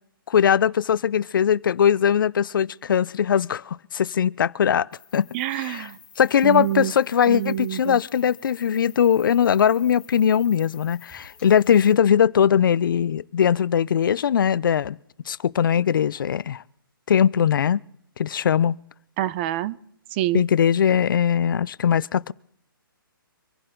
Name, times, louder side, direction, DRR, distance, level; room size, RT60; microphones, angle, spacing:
voice 1, 0.3-5.3 5.5-5.9 6.2-15.0 15.3-16.6 17.1-17.8 18.2-18.8 20.3-22.3, left 8 dB, 65° left, 0.5 m, -20 dB
sound 1, 4.9-11.9, left 6 dB, 10° left, 2.9 m, -50 dB
voice 2, 5.3-6.0 6.4-6.9 7.3-8.0 19.2-19.8 20.1-20.4, right 13 dB, 30° right, 0.6 m, -26 dB
25.0 x 11.5 x 3.8 m
hypercardioid pair, 145°, 12 cm